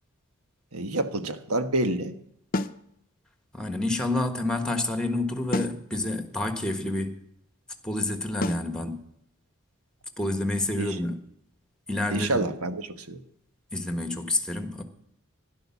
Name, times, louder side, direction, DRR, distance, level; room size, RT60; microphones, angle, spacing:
voice 1, 0.7-2.1 10.8-11.0 12.1-13.2, right 2 dB, 90° right, 1.3 m, -28 dB
sound 1, 2.5-2.8 5.5-5.8 8.4-8.7, left 2 dB, 40° left, 0.6 m, -28 dB
voice 2, 3.5-7.2 7.8-9.0 10.2-11.2 11.9-12.4 13.7-14.8, left 2 dB, 5° left, 1.5 m, -28 dB
12.5 x 11.5 x 7.2 m
head